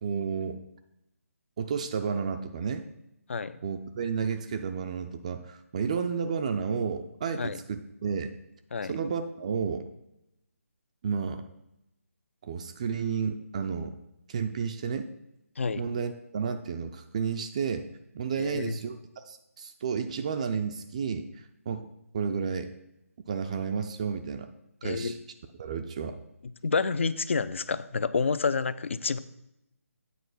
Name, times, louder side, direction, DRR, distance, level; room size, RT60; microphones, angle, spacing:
voice 1, 0.0-0.6 1.6-2.9 3.6-8.3 8.9-9.9 11.0-11.4 12.4-14.0 14.3-15.1 15.8-17.9 18.1-21.9 22.1-22.7 23.3-24.5 24.8-25.2 25.6-26.2, right 6 dB, 25° right, 6 dB, 0.4 m, -31 dB
voice 2, 18.4-18.8 24.8-25.2 26.6-29.2, left 5 dB, 55° left, 16 dB, 0.4 m, -29 dB
8.5 x 4.6 x 5.8 m, 0.86 s
figure-of-eight pair, 150°, 8 cm